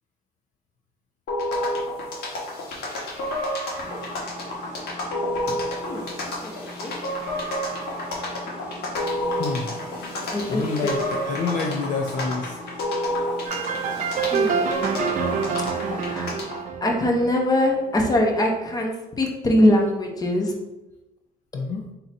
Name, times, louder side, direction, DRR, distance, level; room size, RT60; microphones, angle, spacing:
sound 1, 1.3-16.6, left 1 dB, 70° left, 1.3 m, -30 dB
sound 2, 3.8-16.4, equal, 5° right, 1.3 m, -42 dB
voice 1, 5.8-6.9 10.3-10.9 14.3-15.1 15.8-16.3 16.8-20.5, left 1 dB, 20° left, 1 dB, 0.8 m, -23 dB
voice 2, 9.4-9.7 10.5-12.6 21.5-21.8, left 4 dB, 50° left, 1 dB, 0.5 m, -27 dB
sound 3, 13.5-18.1, right 6 dB, 50° right, 0.4 m, -27 dB
3.8 x 2.8 x 4.1 m, 0.98 s
cardioid pair, 110°, 17 cm